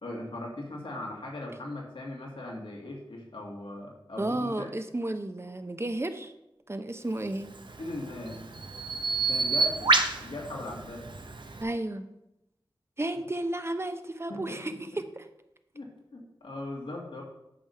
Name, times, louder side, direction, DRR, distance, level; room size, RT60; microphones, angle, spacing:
voice 1, 0.0-4.7 7.8-8.4 9.3-9.9 10.2-11.1 14.3-14.8 15.7-17.2, left 1 dB, 85° left, -1 dB, 1.9 m, -39 dB
voice 2, 4.2-6.3 6.7-7.5 11.6-12.1 13.0-15.2, right 1 dB, 30° right, 9 dB, 0.7 m, -33 dB
Bird vocalization bird call bird song, 7.4-11.6, right 3 dB, 65° right, 0.8 m, -29 dB
8.5 x 3.5 x 6.7 m, 0.88 s
wide cardioid pair, 50°, 9 cm